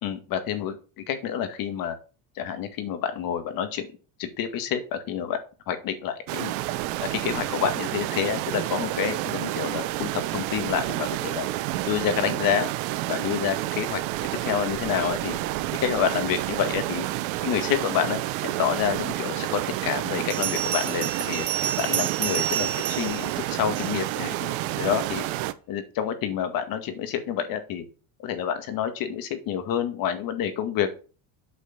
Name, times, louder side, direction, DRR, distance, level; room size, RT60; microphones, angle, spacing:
voice 1, 0.0-2.0 2.4-3.9 4.2-5.4 5.7-6.5 7.1-11.5 11.9-12.7 13.1-14.0 14.4-15.4 15.8-17.1 17.4-21.5 21.8-25.3 25.7-27.8 28.2-30.9, left 9 dB, 55° left, 9 dB, 2.1 m, -28 dB
sound 1, 6.3-25.5, right 16 dB, 85° right, 0.9 m, -30 dB
Bell, 20.3-24.2, right 11 dB, 45° right, 1.6 m, -30 dB
8.5 x 4.9 x 7.4 m, 0.36 s
cardioid pair, 130°, 40 cm